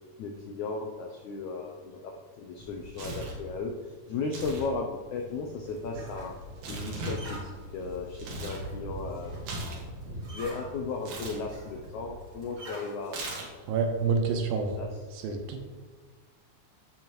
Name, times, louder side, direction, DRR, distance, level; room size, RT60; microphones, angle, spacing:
voice 1, 0.2-3.7 4.1-6.3 6.7-7.4 7.7-9.3 10.2-13.2 14.7-14.9 15.3-15.4, left 4 dB, 85° left, 1 dB, 1.7 m, -35 dB
Tearing, 2.6-3.4 4.2-4.7 4.9-8.6 9.0-10.5 11.0-11.4 13.0-13.7, right 2 dB, 60° right, 2.7 m, -39 dB
sound 1, 5.4-12.9, right 1 dB, 40° right, 3.0 m, -44 dB
voice 2, 13.7-14.7 15.1-15.6, right 5 dB, 85° right, 4 dB, 2.6 m, -28 dB
14.0 x 5.6 x 3.1 m, 1.4 s
omnidirectional pair, 4.2 m